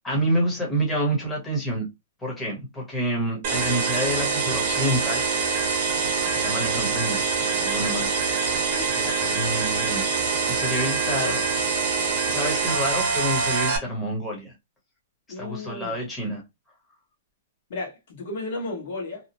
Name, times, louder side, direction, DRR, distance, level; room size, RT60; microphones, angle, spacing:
voice 1, 0.0-1.9 2.2-5.3 6.3-8.6 9.0-11.4 12.3-14.5 15.4-16.4, right 1 dB, 10° left, 0.9 m, -28 dB
sound 1, 3.4-13.8, right 5 dB, 45° right, 0.9 m, -25 dB
voice 2, 15.3-16.0 17.7-19.3, left 2 dB, 55° left, 1.1 m, -34 dB
2.8 x 2.0 x 2.8 m
hypercardioid pair, 160°, 0 cm